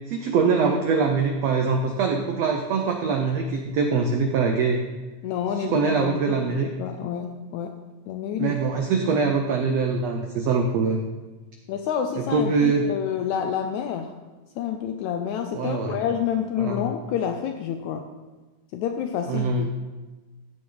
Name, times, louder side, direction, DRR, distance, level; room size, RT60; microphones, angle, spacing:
voice 1, 0.1-4.8 5.5-6.7 8.4-11.0 12.2-12.9 15.5-16.0 16.6-16.9 19.3-19.7, right 5 dB, 85° right, 3 dB, 1.4 m, -23 dB
voice 2, 5.2-6.4 6.6-7.7 8.1-8.6 8.9-9.0 11.7-14.1 14.6-18.1 18.7-19.7, left 8 dB, 85° left, 6 dB, 1.6 m, -28 dB
14.5 x 8.6 x 3.9 m, 1.2 s
omnidirectional pair, 4.1 m